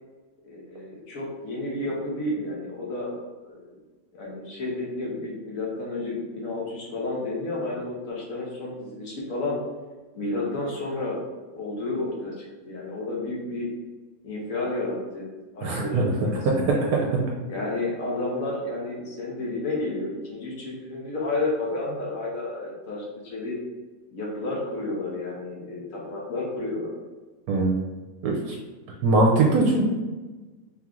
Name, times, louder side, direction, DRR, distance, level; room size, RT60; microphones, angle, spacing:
voice 1, 0.4-3.1 3.4-3.7 4.1-9.6 10.2-11.2 11.5-13.7 14.2-15.3 15.5-16.7 17.5-23.6 24.1-26.9, left 2 dB, 60° left, -3 dB, 1.3 m, -31 dB
voice 2, 15.6-16.1 16.4-16.6 27.5-27.8 28.2-28.6 29.0-29.8, right 2 dB, 70° right, -1 dB, 1.1 m, -21 dB
3.5 x 3.1 x 3.7 m, 1.3 s
omnidirectional pair, 1.7 m